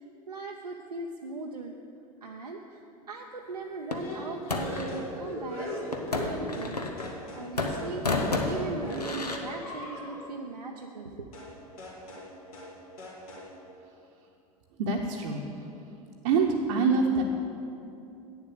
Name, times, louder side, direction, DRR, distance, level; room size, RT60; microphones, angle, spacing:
voice 1, 0.3-1.8 2.2-5.7 6.0-8.1 8.5-11.3, right 3 dB, 85° right, 1 dB, 0.5 m, -39 dB
sound 1, 3.9-5.0 5.9-7.3 7.6-9.4, left 2 dB, 85° left, 0.8 m, -31 dB
sound 2, 4.0-6.7 7.0-7.5 7.7-7.9 8.2-10.3 11.3-11.5 11.8-12.3 12.5-12.7 13.0-13.5, left 1 dB, 65° left, 2.3 m, -39 dB
voice 2, 14.8-15.4 16.2-17.2, right 4 dB, 55° right, -2 dB, 0.8 m, -25 dB
8.9 x 7.1 x 6.5 m, 2.8 s
figure-of-eight pair, 80°, 20 cm